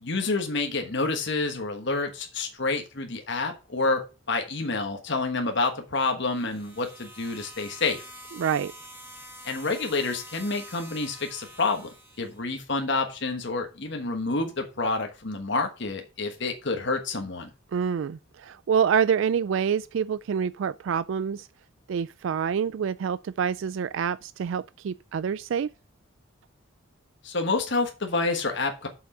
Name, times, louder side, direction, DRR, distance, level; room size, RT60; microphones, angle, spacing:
voice 1, 0.0-4.0 4.3-8.0 9.4-11.9 12.2-17.5 27.2-28.9, left 3 dB, 55° left, 1.3 m, -28 dB
sound 1, 6.2-12.4, equal, 10° right, 1.7 m, -46 dB
voice 2, 8.4-8.7 17.7-21.5 21.9-25.7, right 7 dB, 65° right, 0.3 m, -27 dB
7.1 x 6.1 x 5.5 m
head